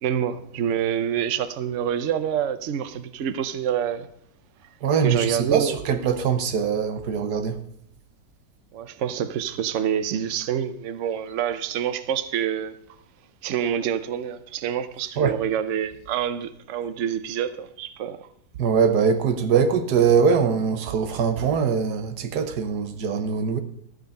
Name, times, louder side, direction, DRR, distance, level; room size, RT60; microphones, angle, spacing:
voice 1, 0.0-4.1 5.0-5.9 8.7-12.8 13.4-18.3, right 9 dB, 55° right, 1.0 m, -27 dB
voice 2, 4.8-7.6 15.2-15.4 18.6-23.6, right 6 dB, 85° right, 1.5 m, -22 dB
13.5 x 6.5 x 6.5 m
omnidirectional pair, 1.7 m